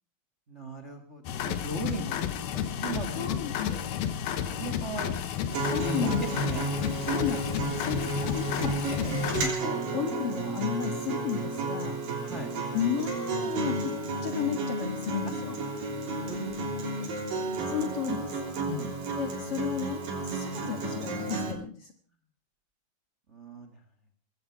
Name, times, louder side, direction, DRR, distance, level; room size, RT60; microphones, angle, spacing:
voice 1, 0.5-3.4 3.7-3.9 4.4-5.1 5.8-6.7 7.4-7.9 9.0-9.2 12.2-12.5 15.7-17.6 18.7-18.9 23.3-23.8, right 2 dB, 35° right, 8 dB, 1.2 m, -39 dB
sound 1, 1.3-9.5, left 9 dB, 85° left, 3.2 m, -32 dB
voice 2, 3.2-4.0 5.7-6.4 7.1-8.8 9.6-12.0 12.7-13.9 14.2-15.6 17.7-18.4 19.2-21.9, left 8 dB, 55° left, 6 dB, 1.9 m, -33 dB
Acoustic guitar, 5.5-21.5, right 2 dB, 65° right, 5.0 m, -32 dB
19.5 x 16.0 x 4.6 m, 0.40 s
omnidirectional pair, 4.2 m